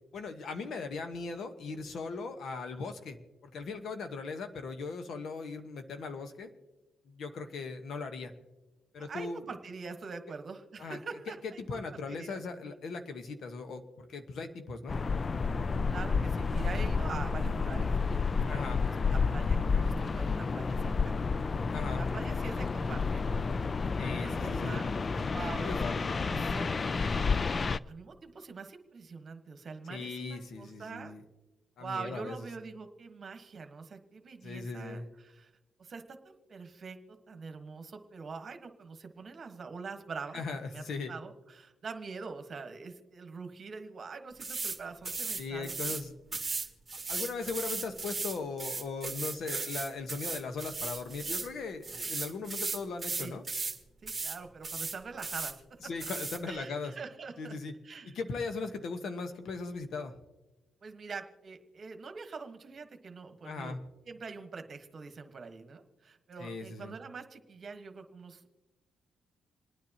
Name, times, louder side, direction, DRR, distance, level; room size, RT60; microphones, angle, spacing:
voice 1, 0.1-6.5 7.0-8.3 8.9-9.4 10.8-11.0 11.4-15.0 18.5-18.8 21.7-22.0 24.0-25.2 25.6-26.0 29.9-31.2 31.8-32.4 34.4-35.1 40.3-41.1 45.4-46.1 47.1-53.4 55.8-56.9 57.4-57.7 58.1-60.1 63.4-63.8 66.4-66.9, left 4 dB, 65° left, 8 dB, 1.2 m, -38 dB
voice 2, 9.0-12.7 15.9-18.2 18.5-21.2 21.9-23.4 23.8-24.9 25.3-31.1 31.8-35.5 35.8-46.0 46.4-46.7 53.2-53.3 54.0-55.8 56.4-57.6 57.8-58.2 60.8-63.8 64.1-68.5, right 4 dB, 45° right, 6 dB, 1.3 m, -44 dB
sound 1, 14.9-27.8, left 4 dB, 35° left, 0.3 m, -30 dB
sound 2, 44.4-44.8 45.1-46.0 46.3-51.5 51.8-53.8 54.1-54.4 54.6-55.5 56.0-56.4, right 4 dB, 25° right, 1.6 m, -36 dB
27.5 x 9.5 x 2.9 m, 1.1 s
cardioid pair, 90°, 0 cm